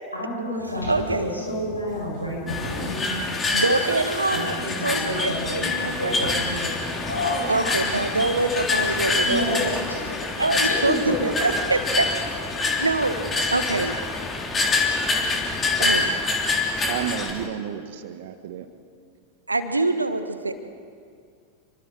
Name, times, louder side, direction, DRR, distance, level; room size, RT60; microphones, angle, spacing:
voice 1, 0.1-3.6 4.3-7.9 9.1-10.2 10.6-11.2, left 1 dB, 85° left, -3 dB, 7.6 m, -29 dB
sound 1, 0.6-6.1, left 1 dB, 45° left, 4.6 m, -46 dB
voice 2, 0.9-1.3 3.5-4.5 4.8-6.3 7.5-9.8 10.4-12.4 12.8-13.2 13.5-14.0 15.8-16.3 19.5-20.5, right 2 dB, 80° right, 9 dB, 1.4 m, -25 dB
sound 2, 2.5-17.3, left 3 dB, 20° left, 3.3 m, -26 dB
sound 3, 8.8-17.5, left 1 dB, 5° left, 1.3 m, -38 dB
voice 3, 16.9-18.7, right 9 dB, 55° right, 9 dB, 1.6 m, -31 dB
29.0 x 24.0 x 4.8 m, 2.2 s
figure-of-eight pair, 90°, 0 cm